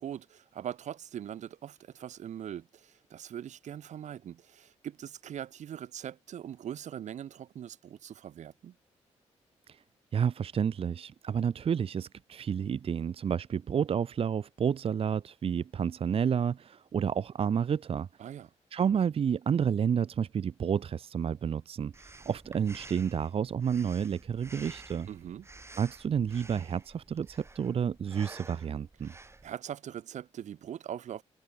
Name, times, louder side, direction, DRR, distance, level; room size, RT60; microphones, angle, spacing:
voice 1, 0.0-8.7 18.2-18.5 25.1-25.5 29.1-31.2, right 10 dB, 75° right, 2.0 m, -41 dB
voice 2, 10.1-18.1 18.7-25.1 25.8-29.1, right 7 dB, 50° right, 0.7 m, -30 dB
Breathing, 21.9-29.5, right 2 dB, 20° right, 7.3 m, -51 dB
cardioid pair, 80°, 12 cm